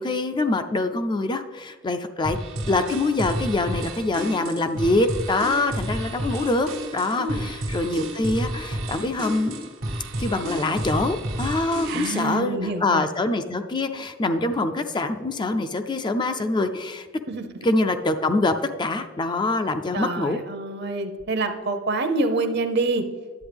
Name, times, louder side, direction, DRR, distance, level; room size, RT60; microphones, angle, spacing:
voice 1, 0.0-2.4 2.7-9.7 10.2-17.1 17.6-20.4, left 2 dB, 25° left, 8 dB, 0.4 m, -24 dB
sound 1, 2.2-12.3, right 1 dB, 85° right, 1.2 m, -31 dB
voice 2, 7.2-7.5 11.9-13.0 17.3-17.5 19.9-23.1, right 2 dB, 55° right, 7 dB, 0.8 m, -26 dB
10.5 x 7.8 x 3.4 m, 1.5 s
head